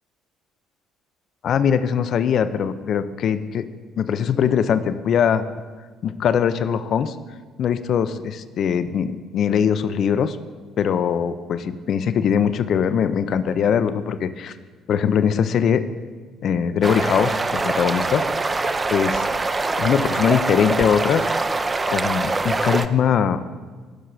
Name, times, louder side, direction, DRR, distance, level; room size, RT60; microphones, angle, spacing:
voice 1, 1.4-3.6 4.0-5.4 6.0-7.2 7.6-10.4 10.8-14.5 14.9-15.8 16.4-18.2 18.9-19.3 19.5-21.2 21.9-23.4, left 8 dB, 50° left, 12 dB, 0.4 m, -21 dB
sound 1, 16.8-22.9, right 3 dB, 25° right, 0.4 m, -23 dB
15.0 x 6.4 x 2.3 m, 1.5 s
figure-of-eight pair, 50°, 0 cm